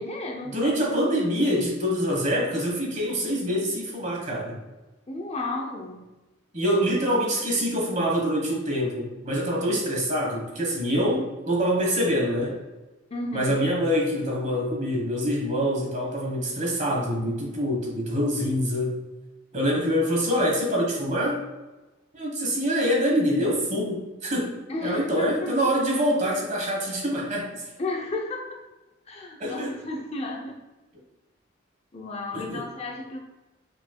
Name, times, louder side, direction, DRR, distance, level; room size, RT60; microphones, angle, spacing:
voice 1, 0.0-0.8 5.1-6.0 13.1-13.6 24.7-25.5 27.8-28.6 29.1-30.6 31.9-33.2, left 2 dB, 30° left, 1 dB, 0.5 m, -33 dB
voice 2, 0.5-4.6 6.5-12.6 13.3-19.0 19.5-21.4 22.1-27.7 29.4-29.8 32.3-32.6, equal, 35° right, -1 dB, 1.2 m, -25 dB
5.0 x 4.5 x 2.2 m, 1.1 s
head